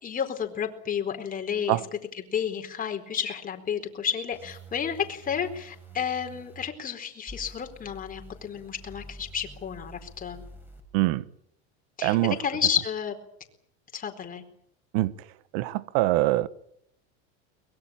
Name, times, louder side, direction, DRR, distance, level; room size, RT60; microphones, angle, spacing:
voice 1, 0.0-10.4 12.0-13.2 13.9-14.4, left 8 dB, 25° left, 4.3 m, -31 dB
sound 1, 4.3-6.6 7.3-10.8, right 1 dB, 5° right, 7.1 m, -47 dB
voice 2, 10.9-11.2 12.0-12.4 14.9-15.1 15.5-16.5, right 17 dB, 60° right, 1.3 m, -23 dB
23.5 x 21.5 x 8.8 m
supercardioid pair, 130°, 34 cm